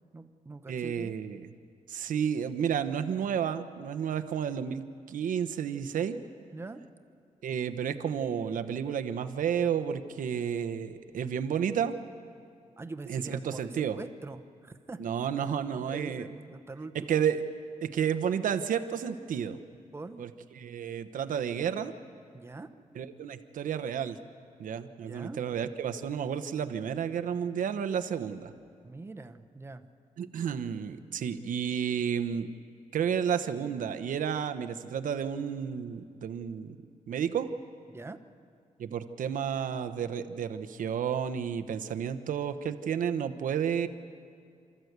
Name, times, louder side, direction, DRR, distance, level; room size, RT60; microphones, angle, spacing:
voice 1, 0.1-1.1 6.5-6.8 12.8-15.0 15.4-17.2 19.9-20.2 22.3-22.7 25.0-25.4 28.8-29.8 37.9-38.2, right 3 dB, 20° right, 9 dB, 0.8 m, -43 dB
voice 2, 0.7-1.5 1.9-6.2 7.4-12.0 13.1-14.0 15.0-16.3 16.9-17.4 17.8-19.6 20.2-20.3 20.5-21.9 23.0-24.2 24.6-28.5 30.2-32.5 32.9-36.8 37.1-37.5 38.8-43.9, right 8 dB, 90° right, 9 dB, 1.0 m, -31 dB
28.5 x 13.5 x 8.1 m, 2.4 s
wide cardioid pair, 155°, 13 cm